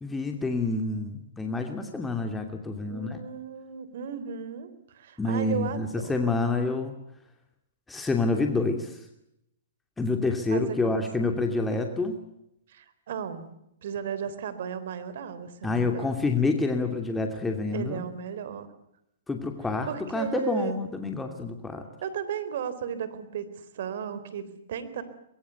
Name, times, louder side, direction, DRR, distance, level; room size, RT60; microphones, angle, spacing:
voice 1, 0.0-3.2 5.2-6.9 7.9-9.0 10.0-12.2 15.6-18.1 19.3-21.9, left 3 dB, 10° left, 4 dB, 2.6 m, -28 dB
voice 2, 2.9-4.7 4.9-6.1 10.5-11.4 12.7-13.5 13.8-16.1 17.7-18.7 19.9-20.7 22.0-25.0, right 8 dB, 60° right, 14 dB, 3.8 m, -35 dB
23.5 x 22.5 x 8.2 m, 0.81 s
hypercardioid pair, 125°, 0 cm